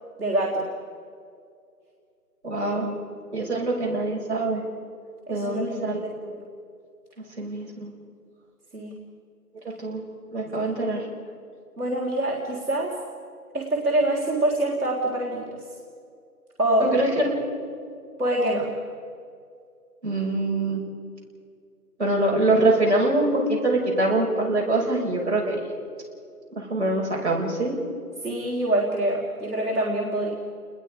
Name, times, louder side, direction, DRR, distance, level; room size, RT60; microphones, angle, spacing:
voice 1, 0.2-0.6 5.3-6.4 8.7-9.0 11.8-12.9 13.5-15.4 16.6-16.9 18.2-18.7 28.2-30.3, right 1 dB, 65° right, -3 dB, 3.7 m, -25 dB
voice 2, 2.4-2.9 3.3-4.6 5.3-6.1 7.4-7.9 9.8-10.0 10.3-11.0 16.8-17.3 20.0-20.8 22.0-25.6 26.5-27.7, right 2 dB, 45° right, -4 dB, 5.9 m, -24 dB
29.5 x 21.0 x 5.0 m, 2.3 s
figure-of-eight pair, 175°, 47 cm